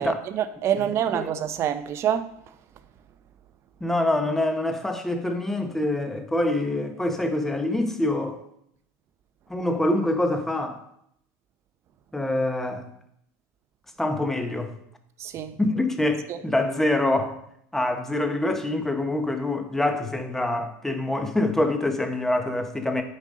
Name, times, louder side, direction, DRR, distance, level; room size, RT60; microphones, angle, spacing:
voice 1, 0.0-2.3 15.2-15.6 16.3-16.4, right 10 dB, 40° right, 0.6 m, -26 dB
voice 2, 3.8-8.4 9.5-10.8 12.1-12.9 14.0-14.7 15.6-17.4 17.7-23.0, left 1 dB, 5° left, 0.8 m, -25 dB
9.4 x 5.3 x 3.7 m
supercardioid pair, 135°, 7 cm